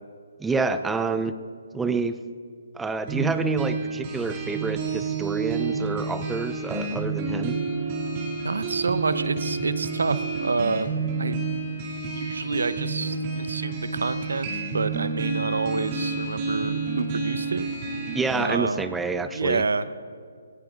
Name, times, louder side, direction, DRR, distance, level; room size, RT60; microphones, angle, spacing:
voice 1, 0.4-1.4 1.7-2.2 2.7-7.6 18.1-19.6, right 4 dB, 5° right, 10 dB, 0.5 m, -28 dB
sound 1, 3.1-18.5, right 4 dB, 35° right, 2.4 m, -29 dB
voice 2, 8.4-10.9 11.2-11.4 12.2-17.7 18.4-18.8 19.3-19.9, right 4 dB, 75° right, 14 dB, 0.7 m, -28 dB
19.5 x 18.0 x 2.5 m, 2.1 s
figure-of-eight pair, 145°, 0 cm